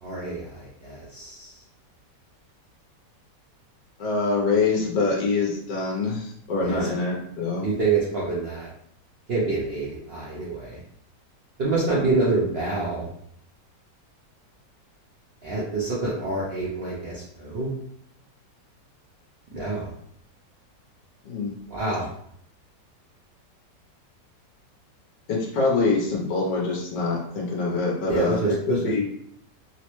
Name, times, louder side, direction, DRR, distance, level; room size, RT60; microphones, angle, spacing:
voice 1, 0.0-1.5 6.6-6.9 7.6-8.7 9.3-10.8 11.6-13.1 15.4-17.7 19.5-19.9 21.7-22.1 28.1-29.0, right 3 dB, 75° right, -6 dB, 0.5 m, -27 dB
voice 2, 4.0-7.7 21.2-21.5 25.3-28.4 28.7-29.0, left 3 dB, 80° left, -3 dB, 1.4 m, -25 dB
3.7 x 2.1 x 2.9 m, 0.68 s
omnidirectional pair, 1.9 m